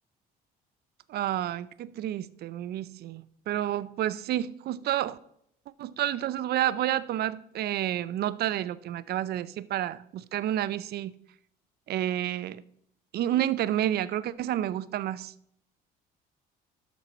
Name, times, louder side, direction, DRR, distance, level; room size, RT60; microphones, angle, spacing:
voice 1, 1.1-5.2 5.8-11.1 11.9-12.6 13.1-15.3, right 12 dB, 60° right, 0.5 m, -30 dB
12.5 x 5.4 x 4.3 m
supercardioid pair, 80°, 18 cm